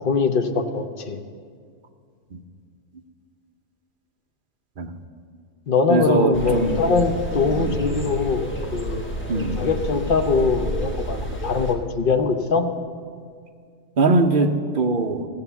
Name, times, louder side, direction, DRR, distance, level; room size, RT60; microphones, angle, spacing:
voice 1, 0.0-1.2 5.7-8.4 8.7-9.1 9.6-12.7, left 4 dB, 45° left, 6 dB, 0.9 m, -22 dB
voice 2, 5.9-6.8 7.5-7.8 9.3-9.6 14.0-15.3, right 3 dB, 45° right, 5 dB, 0.8 m, -21 dB
sound 1, 6.3-11.7, equal, 10° left, 1.0 m, -29 dB
16.0 x 7.1 x 7.0 m, 2.1 s
omnidirectional pair, 1.4 m